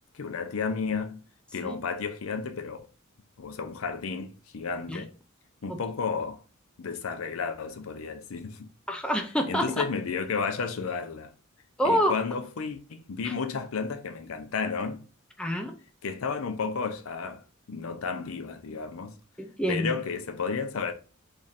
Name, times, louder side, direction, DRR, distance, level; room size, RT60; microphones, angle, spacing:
voice 1, 0.1-1.2 1.5-2.9 3.4-5.1 5.6-6.4 6.8-8.7 9.5-11.3 11.8-15.0 16.0-17.4 17.7-19.1 19.7-20.9, left 5 dB, 75° left, 0.5 m, -32 dB
voice 2, 8.9-9.9 11.8-12.1 13.2-13.3 15.4-15.7 19.4-19.9, equal, 5° left, 0.4 m, -27 dB
3.1 x 2.5 x 4.1 m
head